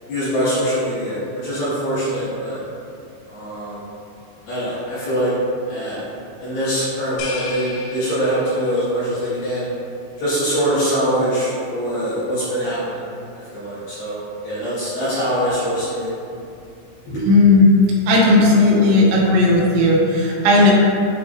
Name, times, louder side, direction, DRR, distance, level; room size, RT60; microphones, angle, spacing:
voice 1, 0.1-2.6 3.3-3.8 4.5-5.3 5.7-6.0 6.4-9.7 10.2-13.1 13.5-16.1 17.1-17.2, equal, 70° left, -13 dB, 2.4 m, -23 dB
sound 1, 7.2-8.9, left 4 dB, 90° left, 3.2 m, -33 dB
voice 2, 17.3-17.7 18.1-20.7, left 2 dB, 85° right, -3 dB, 2.7 m, -14 dB
8.0 x 2.8 x 2.4 m, 2.6 s
omnidirectional pair, 5.6 m